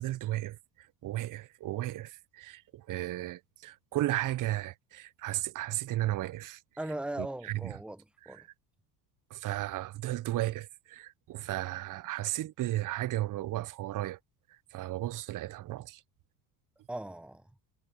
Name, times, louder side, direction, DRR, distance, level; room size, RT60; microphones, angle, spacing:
voice 1, 0.0-6.6 7.2-7.8 8.2-8.5 9.3-14.2 14.5-16.0, right 15 dB, 40° right, 1.0 m, -35 dB
voice 2, 6.8-8.4 16.9-17.5, right 1 dB, ahead, 1.2 m, -39 dB
hypercardioid pair, 75°, 48 cm